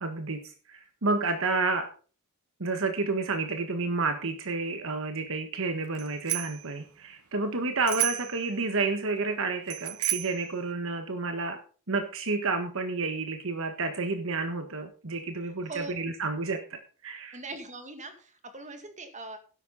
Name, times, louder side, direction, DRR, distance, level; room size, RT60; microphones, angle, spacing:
voice 1, 0.0-1.9 2.6-11.6 11.9-17.4, right 3 dB, 65° right, 6 dB, 1.4 m, -30 dB
Bicycle bell, 5.9-6.7 7.8-8.4 9.7-10.4, right 14 dB, 90° right, 1.2 m, -31 dB
voice 2, 15.7-16.0 17.3-19.4, right 3 dB, 35° right, 6 dB, 2.3 m, -41 dB
12.5 x 10.5 x 4.1 m, 0.39 s
head